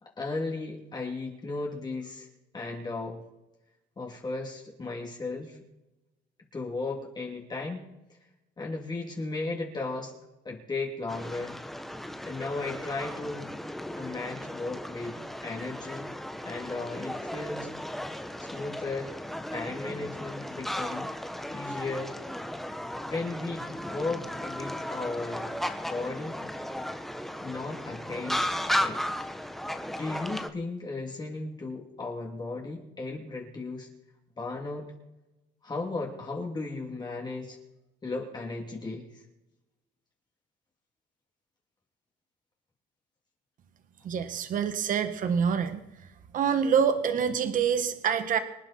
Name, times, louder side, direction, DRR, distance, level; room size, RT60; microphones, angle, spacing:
voice 1, 0.0-2.3 2.5-3.2 4.0-5.6 6.5-7.8 8.6-10.1 10.4-11.6 12.2-13.5 14.0-16.1 16.4-17.7 18.4-19.1 19.5-21.1 21.5-22.1 23.1-25.5 25.9-26.4 27.4-29.1 30.0-33.9 34.4-34.9 35.6-37.6 38.0-39.2, left 3 dB, 25° left, -1 dB, 2.9 m, -35 dB
sound 1, 11.1-30.5, equal, ahead, 1.1 m, -35 dB
voice 2, 44.0-45.8 46.3-48.4, right 7 dB, 50° right, 9 dB, 1.4 m, -26 dB
26.0 x 9.4 x 4.4 m, 0.96 s
cardioid pair, 110°, 17 cm